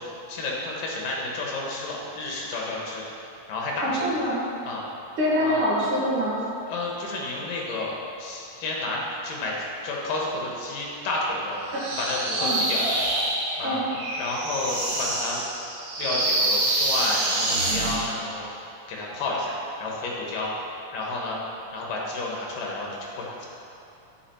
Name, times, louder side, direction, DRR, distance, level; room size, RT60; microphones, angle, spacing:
voice 1, 0.3-3.0 3.5-4.0 4.7-4.8 5.4-5.6 6.7-7.9 8.2-9.5 9.8-11.6 12.0-12.8 13.6-13.8 14.2-15.4 16.0-18.4 18.9-20.5 20.9-21.4 21.7-22.9 23.2-23.5, left 2 dB, 75° left, -2 dB, 2.8 m, -30 dB
voice 2, 3.8-4.4 5.2-6.4 12.4-12.6 13.6-13.8, equal, 45° right, -7 dB, 2.1 m, -24 dB
sound 1, 11.7-18.1, right 2 dB, 65° right, 2.4 m, -26 dB
9.8 x 5.4 x 4.4 m, 2.8 s
omnidirectional pair, 4.0 m